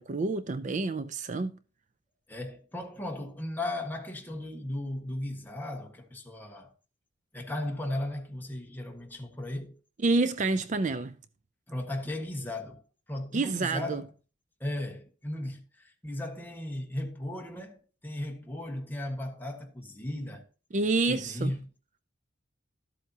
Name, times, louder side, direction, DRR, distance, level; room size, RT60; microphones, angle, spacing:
voice 1, 0.0-1.5 10.0-11.1 13.3-14.0 20.7-21.5, right 3 dB, 40° right, 0.4 m, -28 dB
voice 2, 2.3-6.7 7.3-9.7 11.7-12.8 13.1-14.1 14.6-17.8 18.0-20.4 21.1-21.6, left 1 dB, 10° left, 1.5 m, -36 dB
13.0 x 8.0 x 2.8 m
head